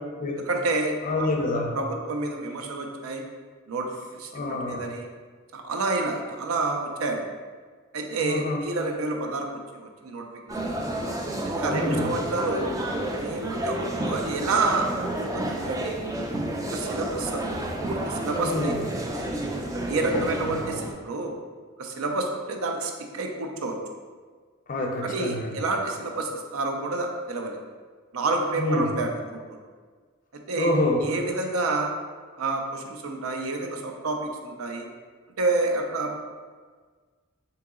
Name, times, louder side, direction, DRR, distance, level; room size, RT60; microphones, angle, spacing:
voice 1, 0.5-1.3 1.7-3.2 3.7-5.1 5.5-7.2 7.9-10.3 11.4-12.7 13.1-14.9 15.1-16.0 16.6-17.4 17.8-18.7 19.9-21.4 21.8-23.8 25.0-27.6 28.1-29.4 30.5-30.7 31.0-31.9 32.4-34.9 35.4-36.2, right 3 dB, 75° right, 3 dB, 0.5 m, -29 dB
voice 2, 1.0-1.8 4.3-4.8 8.2-8.6 11.7-12.1 18.4-18.8 20.4-20.7 24.7-25.6 28.6-28.9 30.6-31.0, left 2 dB, 40° left, 1 dB, 0.5 m, -27 dB
sound 1, 10.5-20.9, right 1 dB, 15° right, 0.3 m, -30 dB
3.8 x 2.9 x 3.6 m, 1.5 s
head